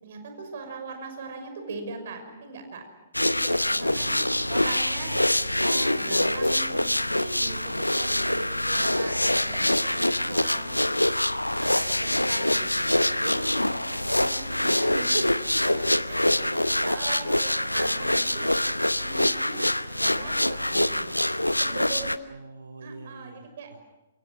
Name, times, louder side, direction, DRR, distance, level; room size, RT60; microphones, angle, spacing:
voice 1, 0.0-2.9 3.2-4.1 4.5-5.1 5.6-7.6 7.9-10.9 11.6-12.9 13.2-13.4 13.7-14.9 15.6-15.7 16.1-18.5 19.0-21.1 21.6-22.2 22.8-23.7, right 4 dB, 50° right, 6 dB, 5.9 m, -40 dB
sound 1, 3.1-22.2, left 1 dB, 85° left, 0.8 m, -25 dB
sound 2, 3.2-11.8, equal, ahead, 6.2 m, -56 dB
voice 2, 3.8-5.2 13.9-14.1 14.5-15.2 16.9-17.2 22.3-23.8, right 3 dB, 70° right, 3 dB, 2.3 m, -40 dB
28.0 x 25.5 x 6.1 m, 1.1 s
figure-of-eight pair, 120°, 0 cm